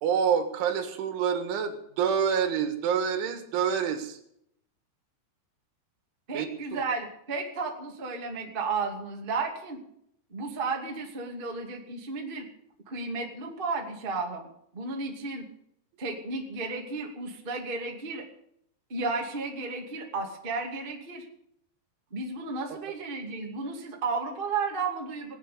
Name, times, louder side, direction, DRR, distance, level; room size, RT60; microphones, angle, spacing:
voice 1, 0.0-4.2 6.3-6.8, right 7 dB, 85° right, 7 dB, 4.1 m, -27 dB
voice 2, 6.3-9.8 10.3-12.5 12.9-14.5 14.7-15.4 16.0-18.2 18.9-21.2 22.1-25.3, right 4 dB, 20° right, 1 dB, 1.5 m, -33 dB
19.5 x 9.2 x 6.8 m, 0.72 s
omnidirectional pair, 5.3 m